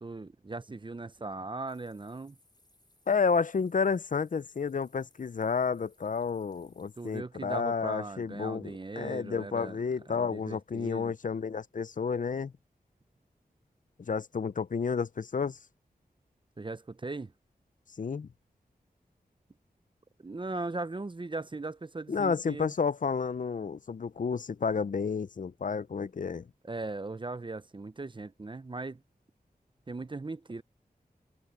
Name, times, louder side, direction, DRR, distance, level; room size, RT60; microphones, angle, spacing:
voice 1, 0.0-2.4 7.0-9.8 10.1-11.1 16.6-17.3 20.2-22.7 26.6-29.0 29.9-30.6, right 3 dB, 30° right, 0.7 m, -38 dB
sound 1, 1.7-7.2, left 2 dB, 25° left, 5.5 m, -67 dB
voice 2, 3.1-12.5 14.1-15.6 18.0-18.3 22.1-26.4, left 5 dB, 55° left, 0.5 m, -31 dB
wide cardioid pair, 80°, 16 cm